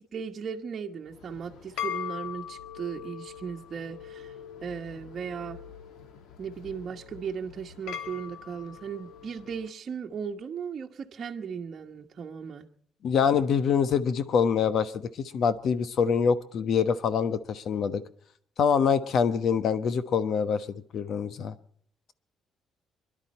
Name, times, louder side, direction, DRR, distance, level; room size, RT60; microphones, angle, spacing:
voice 1, 0.0-4.3 4.6-5.6 6.4-12.7, right 6 dB, 40° right, 0 dB, 1.2 m, -37 dB
sound 1, 1.1-9.6, left 9 dB, 80° left, 1.6 m, -41 dB
voice 2, 13.0-14.9 15.3-18.0 18.6-20.7 20.9-21.5, left 6 dB, 55° left, 12 dB, 1.1 m, -25 dB
26.5 x 11.5 x 4.3 m, 0.63 s
cardioid pair, 135°, 0 cm